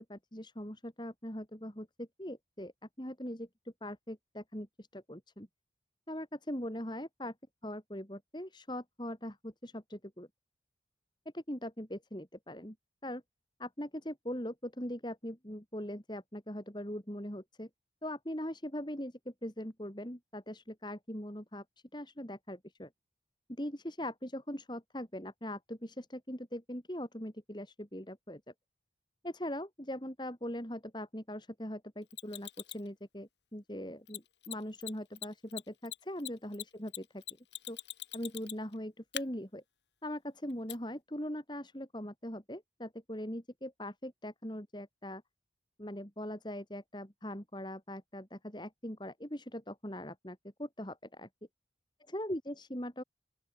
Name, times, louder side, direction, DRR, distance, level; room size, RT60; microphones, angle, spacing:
voice 1, 0.1-2.7 3.0-3.5 3.8-5.5 6.1-7.3 7.6-10.3 11.3-12.8 13.0-13.2 13.6-17.7 18.0-21.6 21.9-22.9 23.5-28.4 29.2-37.0 37.7-37.8 38.1-39.6 40.0-45.2 45.8-51.3 52.1-53.0, equal, 25° left, 3.6 m, -41 dB
Mechanisms, 32.1-32.9 34.1-34.2 34.4-34.5 34.8-34.9 35.2-38.7 39.1-39.2 40.7-40.8, left 13 dB, 75° left, 5.1 m, -41 dB
open air
head